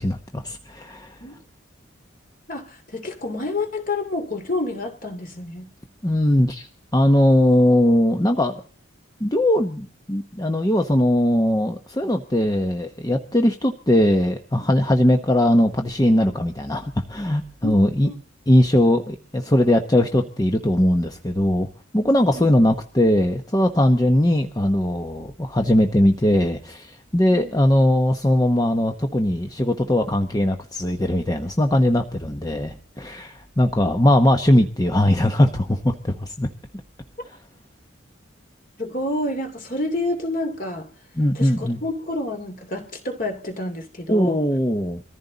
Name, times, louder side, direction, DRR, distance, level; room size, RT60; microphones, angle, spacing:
voice 1, 0.0-1.2 6.0-8.5 9.2-18.1 18.5-21.7 21.9-36.5 37.3-37.4 41.2-41.8 44.1-45.0, left 1 dB, 20° left, 0.9 m, -20 dB
voice 2, 2.5-5.7 17.6-18.2 22.3-22.5 27.3-27.5 33.8-33.9 38.8-40.9 41.3-44.4, left 2 dB, 45° left, 2.7 m, -29 dB
23.0 x 14.5 x 4.0 m
head